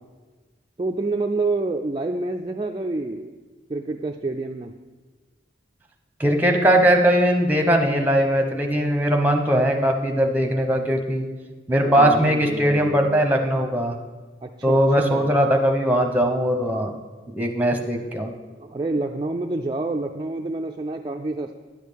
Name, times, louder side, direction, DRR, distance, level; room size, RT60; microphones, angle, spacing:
voice 1, 0.8-3.3 3.7-4.7 11.8-13.2 14.4-14.8 15.1-15.3 18.6-21.5, right 2 dB, 25° right, 3 dB, 0.3 m, -28 dB
voice 2, 6.2-11.3 11.7-14.0 14.6-16.9 17.3-18.3, equal, 10° right, 4 dB, 0.8 m, -20 dB
10.5 x 6.5 x 5.1 m, 1.4 s
head